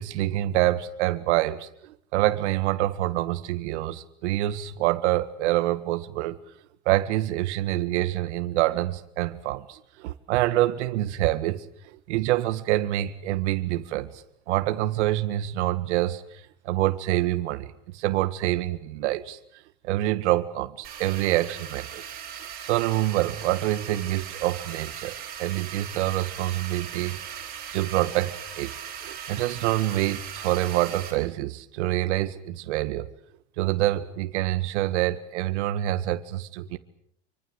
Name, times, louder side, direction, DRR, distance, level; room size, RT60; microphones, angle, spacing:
voice 1, 0.0-6.4 6.9-16.2 16.6-19.4 19.8-22.2 22.6-27.4 27.7-28.7 29.0-33.0 33.6-36.8, right 15 dB, 90° right, 9 dB, 1.8 m, -26 dB
sound 1, 20.8-31.1, right 8 dB, 25° right, 7.7 m, -39 dB
27.0 x 25.0 x 8.1 m, 0.70 s
supercardioid pair, 165°, 34 cm